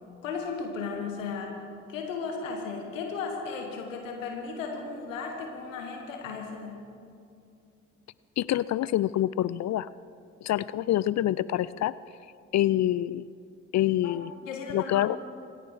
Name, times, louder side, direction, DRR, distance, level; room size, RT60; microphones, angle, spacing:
voice 1, 0.2-1.6 1.9-6.8 14.0-14.2 14.4-15.2, left 5 dB, 85° left, 2 dB, 1.5 m, -35 dB
voice 2, 8.4-9.9 10.4-12.0 12.5-13.2 13.7-14.3 14.7-15.2, left 13 dB, 45° left, 19 dB, 0.5 m, -26 dB
26.0 x 11.0 x 4.8 m, 2.5 s
figure-of-eight pair, 40°, 38 cm